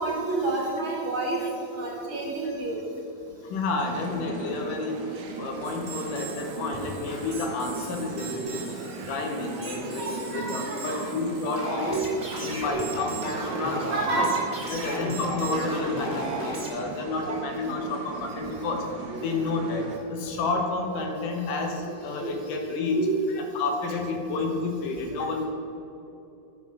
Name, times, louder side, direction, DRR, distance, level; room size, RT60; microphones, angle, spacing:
voice 1, 0.0-1.4 1.7-2.8 8.2-8.5 9.6-11.0 11.8-12.0 12.7-12.8 13.9-14.3 14.8-15.0 15.4-15.6 17.2-17.4 19.1-19.2 22.2-22.3 23.0-23.4, right 3 dB, 50° right, -2 dB, 1.9 m, -30 dB
voice 2, 3.4-12.0 12.4-14.3 14.7-18.9 19.2-23.0 23.4-25.5, left 3 dB, 90° left, 3 dB, 2.7 m, -30 dB
sound 1, 3.8-20.0, right 5 dB, 65° right, 1.3 m, -39 dB
sound 2, 5.6-16.7, right 1 dB, 25° right, 1.6 m, -36 dB
9.2 x 5.9 x 5.9 m, 2.9 s
omnidirectional pair, 3.6 m